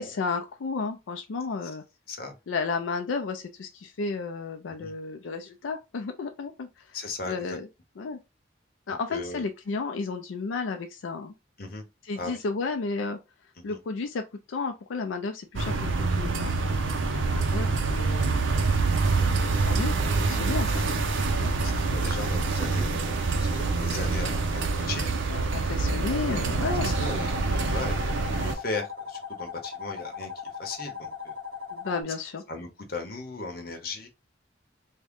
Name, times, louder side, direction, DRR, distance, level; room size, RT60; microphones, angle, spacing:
voice 1, 0.0-1.8 2.5-7.0 7.2-7.7 8.0-8.2 8.9-11.3 12.0-13.2 13.6-16.5 17.0-18.4 19.1-20.9 21.4-21.5 22.7-23.0 25.3-26.9 31.7-32.4, left 4 dB, 85° left, 0.4 m, -33 dB
voice 2, 6.9-7.6 9.1-9.5 11.6-11.8 12.1-12.4 13.7-13.8 21.6-25.1 26.1-26.5 26.8-31.3 32.5-34.1, left 3 dB, 50° left, 0.8 m, -37 dB
sound 1, 15.6-28.6, right 3 dB, 85° right, 0.6 m, -26 dB
sound 2, 26.6-32.0, left 6 dB, 50° right, 1.7 m, -38 dB
3.6 x 2.1 x 3.5 m
head